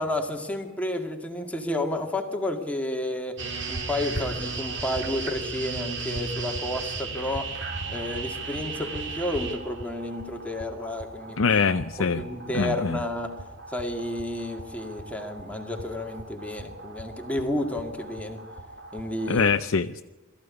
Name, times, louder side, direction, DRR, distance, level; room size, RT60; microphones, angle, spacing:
voice 1, 0.0-3.4 3.7-7.5 7.9-11.5 12.0-13.3 13.7-18.4 18.9-19.5, left 1 dB, 5° left, 3 dB, 2.1 m, -31 dB
sound 1, 3.4-19.5, right 3 dB, 55° right, 2.4 m, -36 dB
voice 2, 11.4-12.2 12.5-13.0 19.3-20.0, left 5 dB, 70° left, 7 dB, 0.6 m, -23 dB
22.0 x 14.5 x 9.7 m, 1.2 s
head